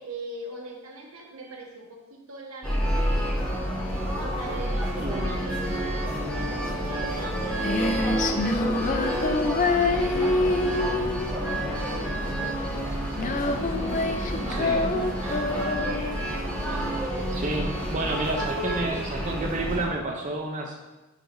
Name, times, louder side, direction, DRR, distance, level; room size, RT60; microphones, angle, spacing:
voice 1, 0.0-3.4 4.2-13.5 13.8-16.0 17.7-18.3, right 2 dB, 80° right, 0 dB, 1.3 m, -42 dB
sound 1, 2.6-19.9, equal, 5° left, 1.4 m, -29 dB
voice 2, 5.0-5.3 8.8-9.0 14.6-14.8 16.7-16.8 17.3-20.7, right 2 dB, 35° right, 0 dB, 0.6 m, -30 dB
Female singing, 7.1-18.1, left 2 dB, 35° left, 0.4 m, -27 dB
10.0 x 4.8 x 2.6 m, 1.1 s
head